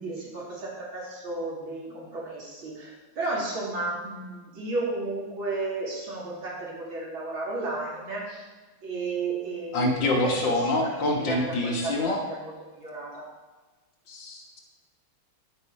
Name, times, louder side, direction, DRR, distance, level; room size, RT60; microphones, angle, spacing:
voice 1, 0.0-8.4 8.8-13.3, right 3 dB, 70° right, -5 dB, 3.5 m, -33 dB
voice 2, 9.7-12.2 14.1-14.6, left 2 dB, 60° left, 0 dB, 2.1 m, -26 dB
8.8 x 8.5 x 4.8 m, 1.2 s
omnidirectional pair, 2.3 m